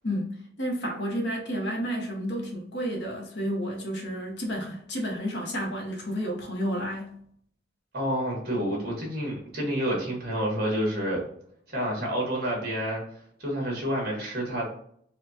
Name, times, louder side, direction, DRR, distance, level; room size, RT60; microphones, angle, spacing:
voice 1, 0.6-7.1, equal, 60° left, 1 dB, 0.9 m, -31 dB
voice 2, 7.9-11.2 11.7-13.0 13.4-14.7, equal, 50° right, -2 dB, 1.4 m, -29 dB
4.3 x 2.3 x 2.7 m, 0.65 s
head